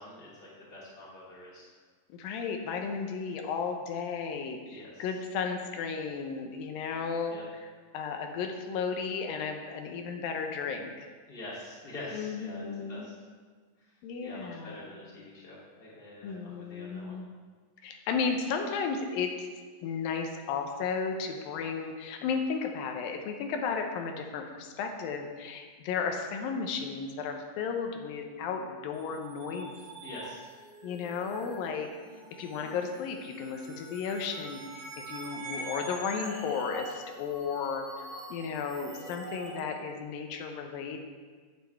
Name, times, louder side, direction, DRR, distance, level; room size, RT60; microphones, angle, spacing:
voice 1, 0.0-1.7 4.7-5.1 7.3-7.4 11.3-13.1 14.2-17.2 18.0-18.1 30.0-30.5, left 1 dB, 20° left, -7 dB, 2.6 m, -45 dB
voice 2, 2.1-7.4 7.9-11.1 12.1-13.1 14.0-15.0 16.2-17.2 17.8-19.5 19.8-29.7 30.8-31.9 32.4-37.8 38.3-41.0, left 5 dB, 90° left, 4 dB, 2.6 m, -34 dB
sound 1, 28.9-39.6, right 2 dB, 90° right, 3.2 m, -44 dB
9.7 x 9.5 x 3.5 m, 1.5 s
omnidirectional pair, 4.0 m